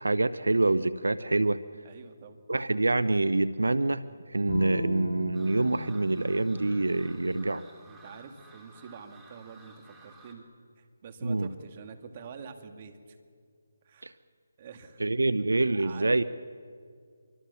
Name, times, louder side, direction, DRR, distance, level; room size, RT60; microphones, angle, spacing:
voice 1, 0.0-1.6 2.5-4.0 4.3-7.6 11.2-11.5 14.0-14.1 15.0-16.2, right 2 dB, 90° right, 15 dB, 0.9 m, -26 dB
voice 2, 1.8-2.4 7.9-10.4 10.8-13.0 13.9-14.2 14.6-15.0 15.8-16.2, right 6 dB, 35° right, 6 dB, 2.4 m, -46 dB
Bowed string instrument, 4.5-7.8, left 3 dB, 35° left, 8.0 m, -38 dB
sound 1, 5.3-10.3, right 3 dB, 5° right, 3.1 m, -55 dB
26.0 x 24.5 x 7.1 m, 2.1 s
figure-of-eight pair, 160°, 0 cm